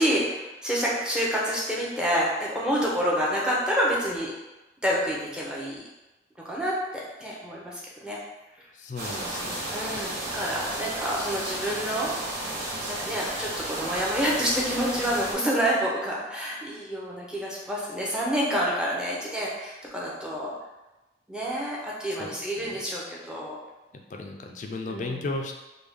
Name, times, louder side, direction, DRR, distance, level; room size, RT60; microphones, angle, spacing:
voice 1, 0.0-4.3 4.8-5.8 6.4-8.2 9.7-12.1 12.9-20.5 21.3-23.6 24.9-25.2, equal, 5° right, -5 dB, 0.6 m, -28 dB
voice 2, 8.7-10.3 22.2-22.8 24.1-25.5, left 2 dB, 40° left, 3 dB, 0.3 m, -36 dB
sound 1, 9.0-15.3, right 1 dB, 70° right, 0.9 m, -33 dB
3.4 x 2.3 x 3.3 m, 1.0 s
head